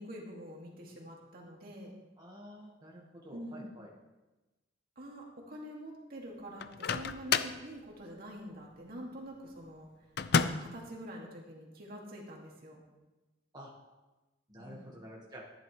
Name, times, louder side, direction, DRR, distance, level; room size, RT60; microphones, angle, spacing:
voice 1, 0.0-1.9 3.3-3.6 5.0-9.9 10.6-12.8 14.6-14.8, equal, 55° right, -2 dB, 2.4 m, -46 dB
voice 2, 2.2-3.9 13.5-13.7 14.5-15.5, equal, 20° right, -4 dB, 1.7 m, -49 dB
Microwave oven, 6.6-7.6 10.2-10.8, left 6 dB, 60° left, 0.5 m, -30 dB
14.5 x 10.5 x 3.3 m, 1.1 s
head